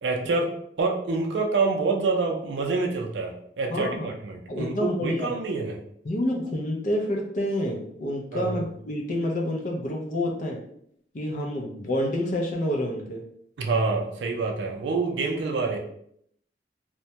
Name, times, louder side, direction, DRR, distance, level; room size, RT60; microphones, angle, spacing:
voice 1, 0.0-5.7 8.3-8.6 13.6-15.8, right 3 dB, 85° right, 1 dB, 0.4 m, -27 dB
voice 2, 3.7-4.1 4.5-5.3 6.0-10.6 11.1-13.2, left 1 dB, 45° left, -1 dB, 0.5 m, -28 dB
2.2 x 2.1 x 2.7 m, 0.68 s
head